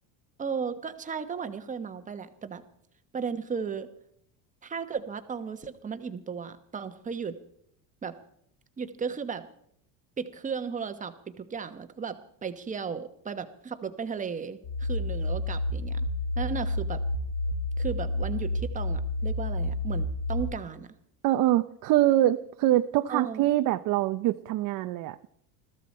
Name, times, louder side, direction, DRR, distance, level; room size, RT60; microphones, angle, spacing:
voice 1, 0.4-2.6 3.1-3.9 4.6-7.4 8.0-8.2 8.8-9.5 10.2-16.1 16.4-17.0 17.8-20.9 23.1-23.5, right 6 dB, 15° right, 9 dB, 1.1 m, -35 dB
sound 1, 14.6-20.4, left 1 dB, 45° left, 2.8 m, -30 dB
voice 2, 21.2-25.3, right 14 dB, 45° right, 9 dB, 0.6 m, -24 dB
21.0 x 14.5 x 4.3 m, 0.68 s
cardioid pair, 155°, 43 cm